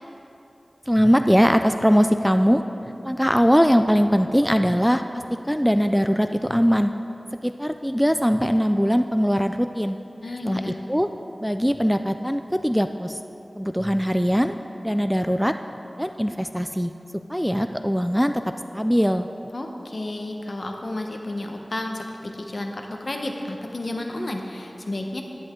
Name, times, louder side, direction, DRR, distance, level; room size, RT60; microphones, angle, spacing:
voice 1, 0.9-2.6 3.0-6.9 7.4-10.0 10.5-11.1 11.4-13.2 13.6-14.5 14.8-15.5 16.0-16.9 17.3-19.3, equal, ahead, 8 dB, 0.3 m, -21 dB
voice 2, 10.2-10.8 19.5-25.2, left 1 dB, 55° left, 3 dB, 1.0 m, -31 dB
10.5 x 10.5 x 3.7 m, 2.9 s
wide cardioid pair, 55°, 0 cm